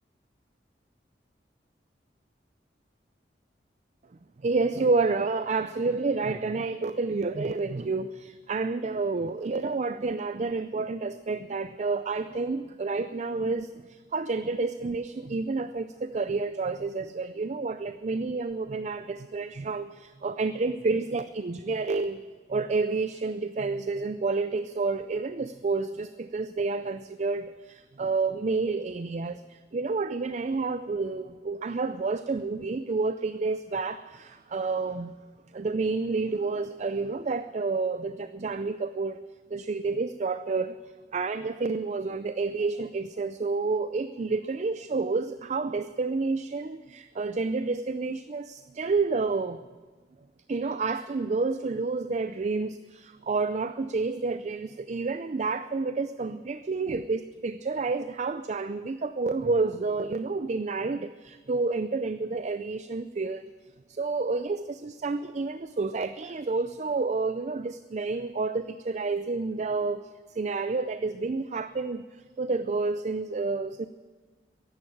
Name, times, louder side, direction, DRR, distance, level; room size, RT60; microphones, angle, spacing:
voice 1, 4.4-22.2 22.5-35.1 35.5-39.2 39.5-40.8 41.1-49.6 50.5-63.5 63.9-73.9, right 3 dB, 40° right, 12 dB, 0.4 m, -29 dB
15.0 x 11.0 x 8.6 m, 1.4 s
head